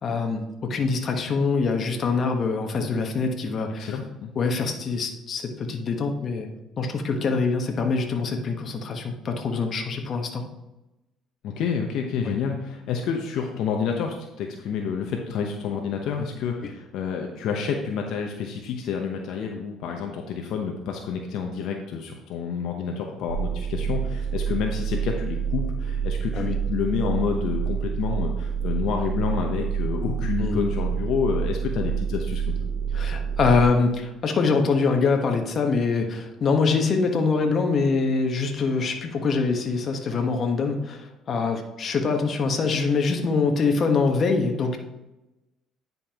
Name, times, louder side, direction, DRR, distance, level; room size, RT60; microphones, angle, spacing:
voice 1, 0.0-4.0 4.3-6.5 6.8-10.4 12.2-12.3 16.6-16.7 26.3-26.5 30.4-30.6 32.9-44.8, left 4 dB, 45° left, 4 dB, 1.2 m, -24 dB
voice 2, 3.8-4.3 11.4-32.6, left 6 dB, 70° left, 2 dB, 0.9 m, -29 dB
sound 1, 23.3-33.6, right 7 dB, 90° right, 0.8 m, -27 dB
9.9 x 5.3 x 3.0 m, 0.98 s
supercardioid pair, 95°, 0 cm